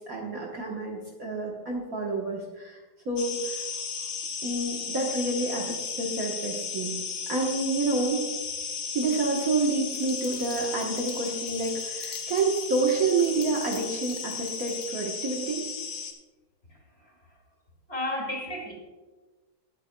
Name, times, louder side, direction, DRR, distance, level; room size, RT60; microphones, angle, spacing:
voice 1, 0.1-2.8 3.0-3.6 4.4-7.0 7.3-8.3 8.9-15.6, right 3 dB, 50° right, -1 dB, 1.5 m, -28 dB
sound 1, 3.2-16.1, left 6 dB, 50° left, 1.3 m, -35 dB
sound 2, 9.9-14.9, left 6 dB, 75° left, 2.1 m, -50 dB
voice 2, 16.7-17.4 17.9-18.7, left 1 dB, 30° left, -1 dB, 2.5 m, -34 dB
20.0 x 8.3 x 2.2 m, 1.2 s
omnidirectional pair, 2.2 m